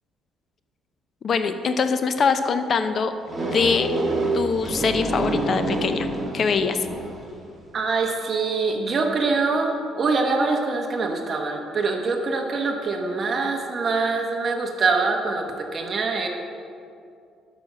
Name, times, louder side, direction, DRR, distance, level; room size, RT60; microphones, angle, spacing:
voice 1, 1.2-3.1 3.4-3.9 4.3-6.1 6.3-6.8, left 5 dB, 45° left, 9 dB, 0.7 m, -23 dB
sound 1, 3.3-7.3, right 2 dB, 15° right, 1.7 m, -27 dB
voice 2, 7.7-16.3, right 3 dB, 40° right, 3 dB, 1.1 m, -24 dB
10.5 x 6.1 x 6.3 m, 2.5 s
cardioid pair, 110°, 0 cm